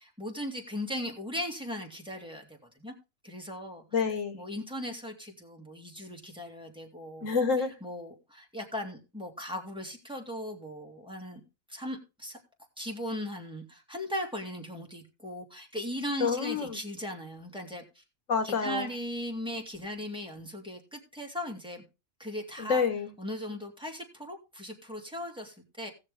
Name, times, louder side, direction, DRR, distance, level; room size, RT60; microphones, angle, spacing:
voice 1, 0.0-2.9 3.2-3.8 4.3-7.3 7.8-11.4 11.7-12.4 12.8-18.0 18.4-21.8 22.2-22.8 23.2-25.9, equal, 5° right, 2.4 m, -38 dB
voice 2, 3.9-4.4 7.2-7.7 16.2-16.8 18.3-18.9 22.6-23.1, left 5 dB, 85° left, 1.6 m, -28 dB
18.0 x 6.5 x 3.4 m
omnidirectional pair, 1.3 m